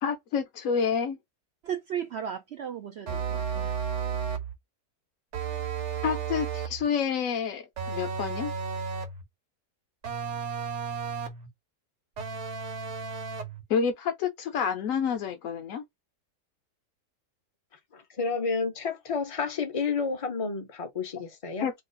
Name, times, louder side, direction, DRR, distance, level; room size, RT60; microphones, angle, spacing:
voice 1, 0.0-1.2 6.0-8.5 13.7-15.8 21.6-21.7, left 6 dB, 65° left, 0.9 m, -28 dB
voice 2, 1.6-3.7, right 9 dB, 75° right, 0.6 m, -35 dB
sound 1, 3.1-4.5 5.3-6.8 7.8-9.2 10.0-11.5 12.2-13.6, right 6 dB, 55° right, 1.0 m, -33 dB
voice 3, 17.9-21.7, left 5 dB, 40° left, 0.5 m, -30 dB
3.0 x 2.4 x 3.8 m
omnidirectional pair, 1.7 m